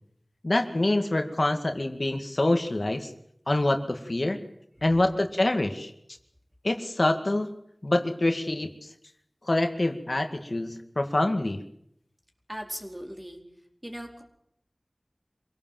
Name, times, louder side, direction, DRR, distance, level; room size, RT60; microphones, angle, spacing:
voice 1, 0.4-3.1 3.5-4.4 4.8-5.9 6.6-7.5 7.8-8.7 9.4-11.6, left 1 dB, 60° left, 5 dB, 2.1 m, -25 dB
voice 2, 12.5-13.4 13.8-14.2, equal, 20° right, 2 dB, 4.6 m, -38 dB
25.5 x 17.5 x 7.7 m, 0.75 s
wide cardioid pair, 40°, 0 cm